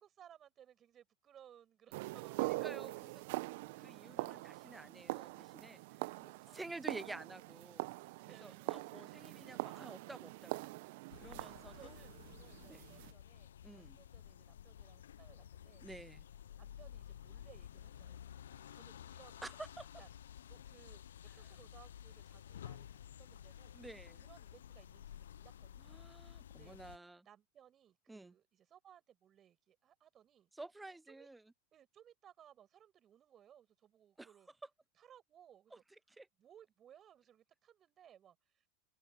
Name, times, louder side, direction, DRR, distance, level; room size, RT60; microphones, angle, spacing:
voice 1, 0.0-2.8 4.2-4.4 5.7-6.0 6.4-6.8 8.3-8.8 11.7-15.9 16.6-19.4 20.0-20.1 20.5-23.8 24.2-26.2 26.5-26.8 27.2-30.5 31.1-31.3 31.7-34.5 35.0-35.8 36.4-38.7, right 10 dB, 35° right, 7.9 m, -63 dB
sound 1, 1.9-13.1, right 22 dB, 60° right, 1.0 m, -43 dB
voice 2, 2.4-3.2 3.8-7.9 8.4-10.8 11.2-11.9 12.6-12.8 13.6-14.0 15.8-16.3 19.4-20.0 21.4-21.5 23.7-24.2 25.8-27.3 28.1-28.3 30.5-31.5 34.2-34.3 35.7-35.8 36.2-36.3, right 2 dB, 10° right, 0.6 m, -51 dB
sound 2, 11.1-27.0, left 10 dB, 80° left, 0.4 m, -53 dB
open air
hypercardioid pair, 95°, 0 cm